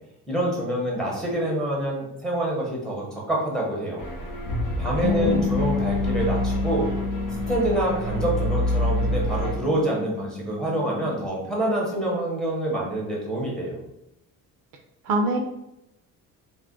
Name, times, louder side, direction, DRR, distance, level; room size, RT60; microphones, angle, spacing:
voice 1, 0.3-4.0 4.8-6.9 7.3-13.8, right 1 dB, ahead, -4 dB, 0.7 m, -26 dB
sound 1, 4.0-9.6, equal, 60° left, 0.9 m, -27 dB
Bass guitar, 5.0-11.3, left 6 dB, 40° left, 0.5 m, -30 dB
voice 2, 5.0-5.5 15.0-15.4, right 2 dB, 60° right, 3 dB, 0.5 m, -24 dB
2.4 x 2.1 x 3.5 m, 0.86 s
cardioid pair, 135°, 36 cm